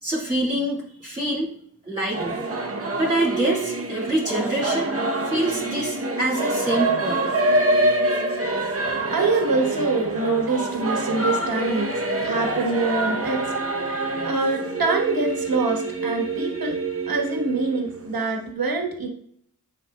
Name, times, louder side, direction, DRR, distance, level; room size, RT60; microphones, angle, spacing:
voice 1, 0.0-1.5 1.9-2.4 3.0-4.9 5.2-7.3, right 1 dB, 15° right, -5 dB, 2.3 m, -25 dB
Singing / Musical instrument, 2.1-18.4, right 2 dB, 40° right, 0.9 m, -26 dB
voice 2, 9.1-11.9 12.2-13.5 13.8-16.7 17.1-19.1, right 3 dB, 70° right, 2 dB, 1.3 m, -25 dB
9.9 x 4.7 x 2.3 m, 0.66 s
wide cardioid pair, 65°, 37 cm